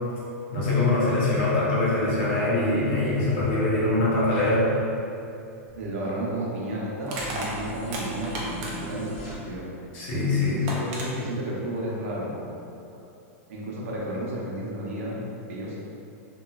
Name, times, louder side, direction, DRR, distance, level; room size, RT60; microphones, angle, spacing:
voice 1, 0.5-4.7 9.9-10.6, left 2 dB, 50° left, -7 dB, 0.8 m, -23 dB
Crushing, 5.7-5.8 7.0-9.0 10.2-10.3 10.7-11.1, right 1 dB, 35° right, 0.4 m, -34 dB
voice 2, 5.8-9.6 10.4-12.5 13.5-15.7, right 1 dB, 70° right, -5 dB, 0.7 m, -32 dB
sound 1, 7.1-9.3, right 2 dB, 15° left, 0.6 m, -38 dB
3.0 x 2.3 x 2.2 m, 2.6 s
supercardioid pair, 170°, 8 cm